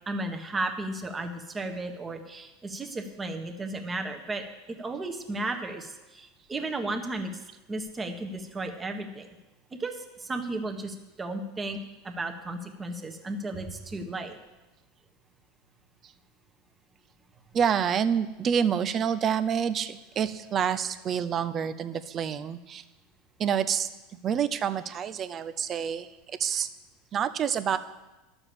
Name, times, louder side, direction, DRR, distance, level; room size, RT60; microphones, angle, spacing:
voice 1, 0.1-4.4 4.8-7.4 7.7-9.3 9.7-11.8 12.0-14.4, right 2 dB, 20° right, 5 dB, 1.4 m, -34 dB
voice 2, 17.5-22.8 23.4-23.9 24.2-26.1 26.4-26.7 27.1-27.8, right 8 dB, 40° right, 12 dB, 0.7 m, -27 dB
11.0 x 7.1 x 7.1 m, 1.1 s
hypercardioid pair, 90°, 0 cm